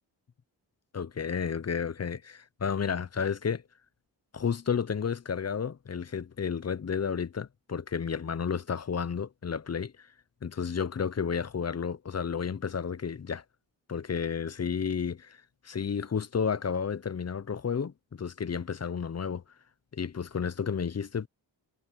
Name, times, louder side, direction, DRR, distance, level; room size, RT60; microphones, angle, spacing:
voice 1, 0.9-3.6 4.3-10.1 10.4-13.4 13.9-19.4 19.9-21.3, left 6 dB, 35° left, 0.7 m, -32 dB
cardioid pair, 75°, 44 cm